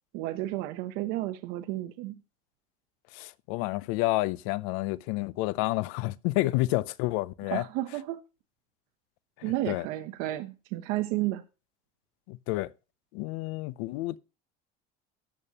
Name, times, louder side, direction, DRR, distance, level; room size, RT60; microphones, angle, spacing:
voice 1, 0.1-2.2 7.5-8.2 9.4-11.4, right 16 dB, 60° right, 0.8 m, -32 dB
voice 2, 3.1-7.6 9.7-9.9 12.3-12.7 13.1-14.2, left 19 dB, 65° left, 0.5 m, -29 dB
13.5 x 8.7 x 2.8 m
cardioid pair, 165°, 18 cm